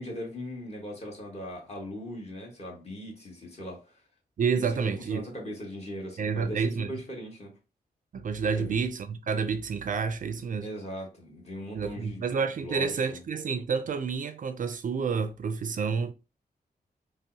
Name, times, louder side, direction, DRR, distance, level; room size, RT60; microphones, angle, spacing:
voice 1, 0.0-4.0 4.5-7.5 8.6-8.8 10.6-12.2 12.6-13.2, equal, 40° left, 1.4 m, -39 dB
voice 2, 4.4-5.3 6.2-6.9 8.1-10.7 11.8-16.1, right 5 dB, 55° right, 0.4 m, -29 dB
5.2 x 2.0 x 2.7 m
wide cardioid pair, 145°, 17 cm